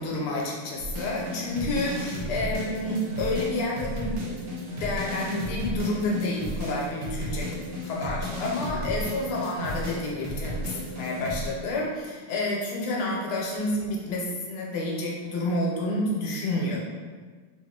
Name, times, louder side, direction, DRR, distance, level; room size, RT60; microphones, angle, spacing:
voice 1, 0.0-4.2 4.8-7.5 7.8-16.8, left 2 dB, 85° left, -3 dB, 1.6 m, -29 dB
sound 1, 0.8-11.5, equal, 65° right, 1.2 m, -33 dB
3.8 x 2.3 x 3.6 m, 1.5 s
omnidirectional pair, 2.4 m